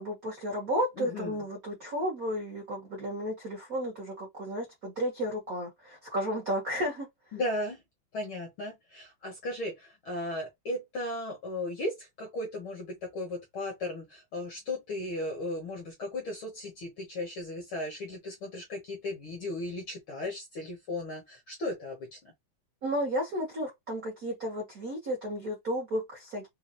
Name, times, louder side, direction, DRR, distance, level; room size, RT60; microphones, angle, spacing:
voice 1, 0.0-7.1 22.8-26.5, equal, 55° right, 0.9 m, -33 dB
voice 2, 1.0-1.4 7.3-7.8 8.1-22.3, left 1 dB, 65° left, 1.3 m, -36 dB
5.5 x 2.3 x 2.5 m
omnidirectional pair, 3.6 m